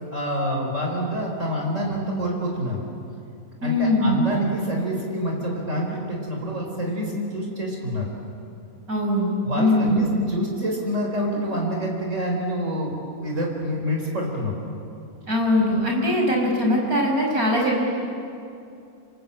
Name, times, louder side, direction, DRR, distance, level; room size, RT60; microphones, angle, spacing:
voice 1, 0.1-2.8 3.6-8.1 9.4-14.6, equal, 55° right, 0 dB, 4.6 m, -27 dB
voice 2, 3.6-4.3 8.9-10.1 15.3-17.8, left 1 dB, 80° right, 0 dB, 6.2 m, -21 dB
28.0 x 24.0 x 8.7 m, 2.6 s
omnidirectional pair, 1.5 m